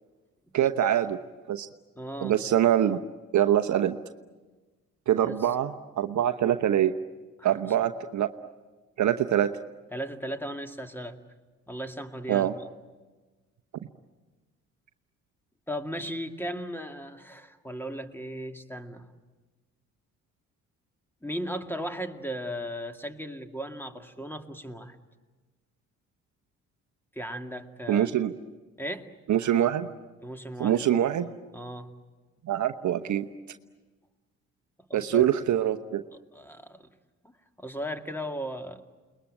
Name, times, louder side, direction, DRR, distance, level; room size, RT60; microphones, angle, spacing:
voice 1, 0.5-1.2 1.5-1.7 2.2-3.0 3.3-4.0 5.1-6.9 7.4-8.3 9.0-9.5 12.3-12.5 27.9-28.3 29.3-29.9 30.6-31.3 32.5-33.3 34.9-36.0, right 11 dB, 50° right, 8 dB, 1.0 m, -24 dB
voice 2, 2.0-2.4 5.2-5.3 7.4-7.8 9.9-11.2 11.7-12.5 15.7-19.1 21.2-25.0 27.1-28.1 28.8-29.1 30.2-31.1 31.5-31.9 34.9-35.3 36.3-36.9 37.2-38.8, equal, 5° left, 7 dB, 2.2 m, -36 dB
29.5 x 20.5 x 9.0 m, 1.3 s
hypercardioid pair, 45°, 38 cm